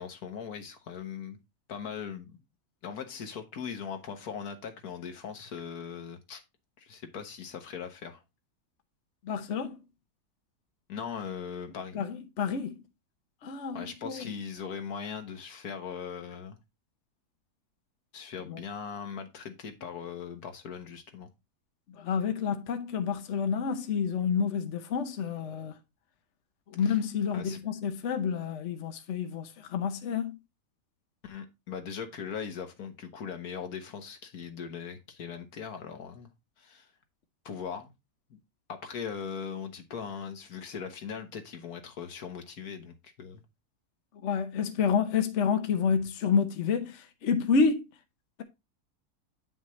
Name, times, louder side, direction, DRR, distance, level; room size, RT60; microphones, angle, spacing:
voice 1, 0.0-1.4 1.7-2.4 2.8-6.4 6.8-8.2 10.9-12.0 13.7-16.6 18.1-21.3 26.8-27.0 27.3-27.6 31.2-36.3 36.6-36.9 37.4-37.9 38.3-38.4 38.7-43.4, left 7 dB, 70° left, 1.6 m, -40 dB
voice 2, 9.2-9.8 11.9-12.8 13.4-14.3 18.5-18.6 22.0-25.8 26.7-30.4 44.2-47.8, left 6 dB, 55° left, 1.1 m, -29 dB
8.8 x 5.7 x 3.1 m
omnidirectional pair, 1.7 m